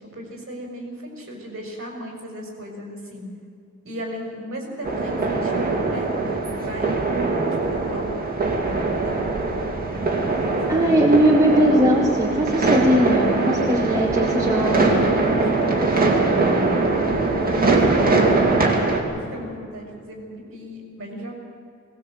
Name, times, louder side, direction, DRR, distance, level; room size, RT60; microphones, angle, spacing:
voice 1, 0.1-3.3 3.8-7.1 7.6-8.1 9.0-9.3 10.5-10.9 15.1-16.2 16.8-21.3, equal, 45° right, 1 dB, 5.6 m, -36 dB
sound 1, 4.8-19.0, right 3 dB, 30° right, 2.7 m, -21 dB
voice 2, 10.7-15.1, equal, 10° right, -4 dB, 2.5 m, -19 dB
20.5 x 19.0 x 8.0 m, 2.4 s
wide cardioid pair, 170°, 30 cm